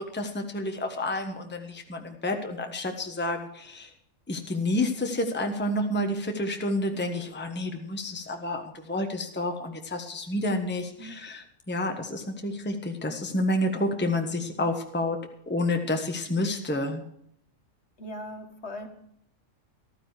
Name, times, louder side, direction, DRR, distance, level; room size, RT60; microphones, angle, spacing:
voice 1, 0.0-3.9 4.3-17.0, left 1 dB, 10° left, 4 dB, 1.2 m, -29 dB
voice 2, 18.0-18.9, left 1 dB, 60° left, 5 dB, 1.9 m, -39 dB
14.0 x 13.0 x 4.9 m, 0.71 s
omnidirectional pair, 1.3 m